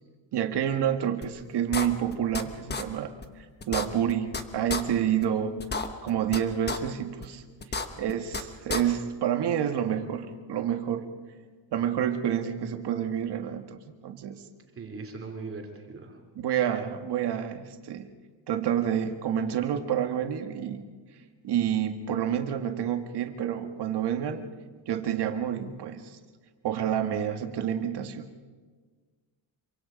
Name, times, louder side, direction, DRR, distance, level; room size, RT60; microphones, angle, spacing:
voice 1, 0.3-5.6 6.0-7.4 8.0-11.1 11.7-13.8 14.0-14.4 16.3-18.1 18.5-20.9 21.4-24.5 24.9-26.2 26.6-28.3, right 9 dB, 60° right, 6 dB, 1.8 m, -28 dB
sound 1, 1.2-1.3 1.7-2.4 2.7-2.8 3.2-3.3 3.6-4.4 4.7-4.8 5.2-5.3 5.6-6.4 6.7-6.8 7.2-7.3 7.6-8.4 8.7-8.8, left 4 dB, 20° left, 1.1 m, -31 dB
voice 2, 7.7-8.0 14.8-16.2, right 4 dB, 30° right, 2 dB, 3.0 m, -40 dB
27.0 x 24.5 x 5.2 m, 1.5 s
cardioid pair, 170°, 46 cm